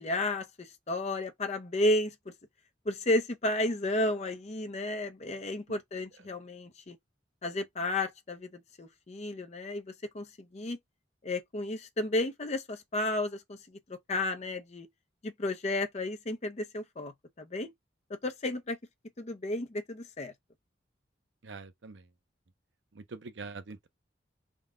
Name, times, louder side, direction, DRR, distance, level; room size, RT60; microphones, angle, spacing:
voice 1, 0.0-2.1 2.8-7.0 7.4-10.8 11.2-14.9 15.2-17.1 17.4-17.7 18.2-18.8 19.2-20.3, left 1 dB, 35° left, 0.6 m, -32 dB
voice 2, 21.4-22.1 22.9-23.9, right 4 dB, 75° right, 0.7 m, -44 dB
3.7 x 2.3 x 3.6 m
head